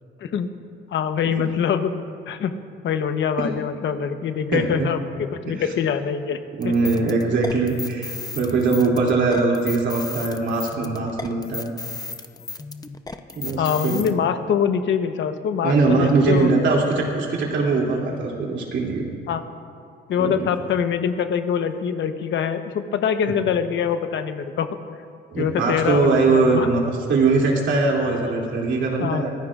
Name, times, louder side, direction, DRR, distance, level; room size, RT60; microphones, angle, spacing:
voice 1, 0.9-1.9 2.3-2.5 2.8-6.7 13.6-16.5 19.3-19.4 20.1-24.7 25.4-26.7 29.0-29.2, left 7 dB, 70° left, 8 dB, 1.0 m, -24 dB
voice 2, 4.5-4.9 6.6-11.7 13.3-14.0 15.6-19.0 20.2-20.4 25.3-26.8 27.1-29.3, right 3 dB, 70° right, -2 dB, 2.9 m, -21 dB
sound 1, 6.6-14.1, left 3 dB, 20° left, 0.7 m, -35 dB
23.5 x 16.0 x 2.5 m, 2.4 s
cardioid pair, 90°, 20 cm